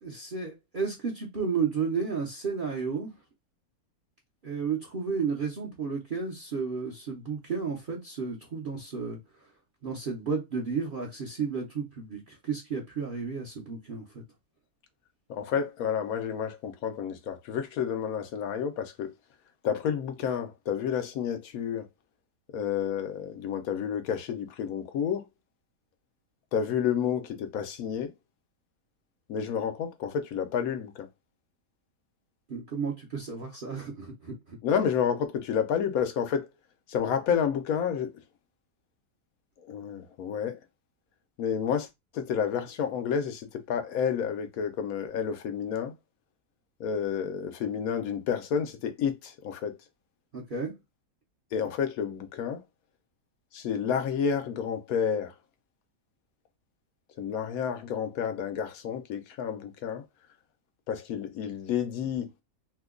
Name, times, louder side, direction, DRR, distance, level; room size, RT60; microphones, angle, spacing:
voice 1, 0.0-3.1 4.4-9.2 9.8-14.2 32.5-34.6 50.3-50.7, right 5 dB, 45° right, 0.7 m, -32 dB
voice 2, 15.3-19.1 19.6-21.8 22.5-25.2 26.5-28.1 29.3-31.1 34.6-36.5 36.9-38.1 39.7-40.6 41.4-41.9 42.1-45.9 46.8-49.7 51.5-52.6 53.5-55.3 57.2-60.0 60.9-62.3, left 7 dB, 75° left, 1.0 m, -30 dB
2.8 x 2.2 x 3.6 m
omnidirectional pair, 1.6 m